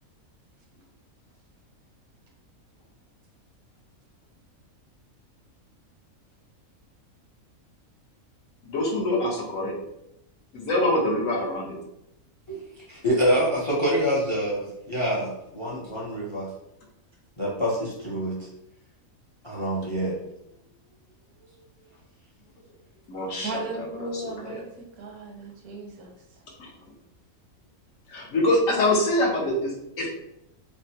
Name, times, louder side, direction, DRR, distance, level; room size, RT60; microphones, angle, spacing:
voice 1, 8.6-9.8 10.5-11.8 23.1-24.6 26.6-26.7 28.1-30.1, left 1 dB, 70° left, -1 dB, 1.1 m, -25 dB
voice 2, 12.9-16.5 17.4-18.4 19.4-20.2, equal, 35° left, -5 dB, 0.4 m, -26 dB
voice 3, 23.4-26.1, right 2 dB, 90° right, 1 dB, 1.2 m, -36 dB
3.6 x 2.1 x 2.7 m, 0.82 s
omnidirectional pair, 1.5 m